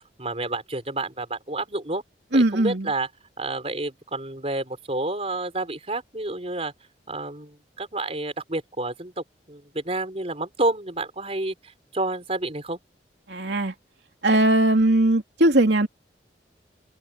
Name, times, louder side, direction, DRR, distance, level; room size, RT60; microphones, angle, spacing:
voice 1, 0.0-2.0 2.3-3.1 3.4-6.7 7.1-12.8, right 2 dB, 35° right, 4.6 m, -29 dB
voice 2, 2.3-2.9 13.3-13.7 14.2-15.9, right 1 dB, 80° right, 2.6 m, -19 dB
head